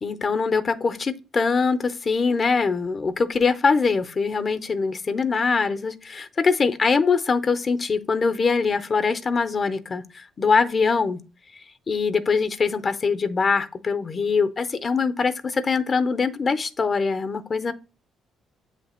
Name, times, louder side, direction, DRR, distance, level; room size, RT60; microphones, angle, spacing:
voice 1, 0.0-11.2 11.9-17.7, left 4 dB, 40° left, 0.6 m, -23 dB
7.6 x 3.2 x 4.2 m
cardioid pair, 85°, 0 cm